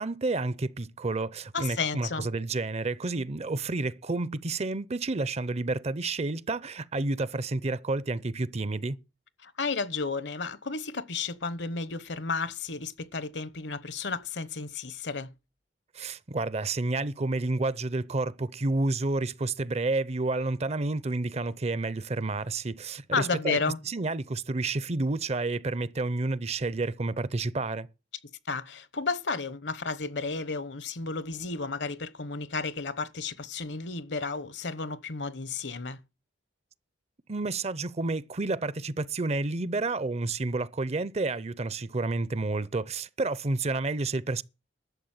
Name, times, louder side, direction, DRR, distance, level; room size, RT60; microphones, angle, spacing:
voice 1, 0.0-9.0 15.9-23.6 23.9-27.9 37.3-44.4, right 3 dB, 35° right, 0.6 m, -30 dB
voice 2, 1.5-2.3 9.4-15.3 23.1-23.8 28.5-36.0, left 4 dB, 70° left, 1.0 m, -32 dB
11.5 x 7.2 x 8.9 m
head